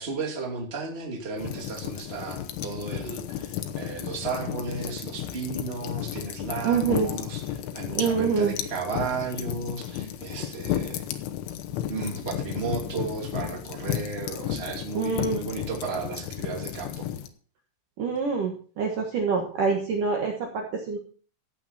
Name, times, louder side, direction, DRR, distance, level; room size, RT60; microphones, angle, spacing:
voice 1, 0.0-11.0 11.9-17.1, right 4 dB, 20° right, 0 dB, 2.1 m, -34 dB
sound 1, 1.4-17.3, left 11 dB, 85° left, 3.5 m, -33 dB
voice 2, 6.6-7.1 7.9-8.5 14.9-15.4 18.0-21.0, right 5 dB, 60° right, 1 dB, 2.5 m, -26 dB
15.0 x 8.8 x 4.2 m, 0.41 s
omnidirectional pair, 5.4 m